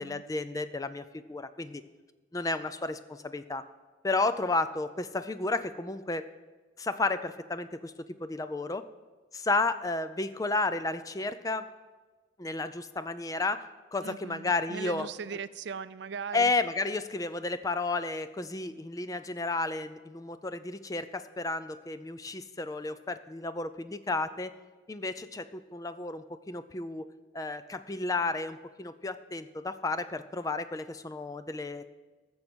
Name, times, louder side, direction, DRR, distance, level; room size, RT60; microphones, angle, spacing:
voice 1, 0.0-1.8 2.3-3.6 4.0-6.3 6.8-8.8 9.3-11.7 12.4-13.7 13.9-15.1 16.3-24.5 24.9-27.0 27.3-31.9, left 3 dB, 15° left, 12 dB, 0.4 m, -32 dB
voice 2, 14.0-16.5, right 6 dB, 60° right, 15 dB, 0.4 m, -39 dB
14.0 x 7.1 x 6.2 m, 1.3 s
head